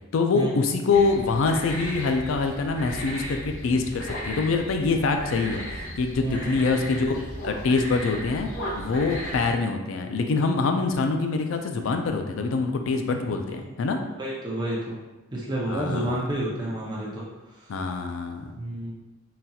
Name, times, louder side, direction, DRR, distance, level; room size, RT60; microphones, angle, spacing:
voice 1, 0.1-7.2 7.4-8.5 8.7-14.0 15.7-16.2 17.7-18.5, left 4 dB, 70° left, 5 dB, 0.4 m, -25 dB
sound 1, 0.9-9.5, equal, 85° left, 0.9 m, -35 dB
voice 2, 6.2-6.7 13.6-13.7 14.2-15.0 15.3-17.2 18.5-18.9, right 1 dB, 20° right, -6 dB, 0.5 m, -30 dB
3.9 x 2.7 x 2.3 m, 1.1 s
head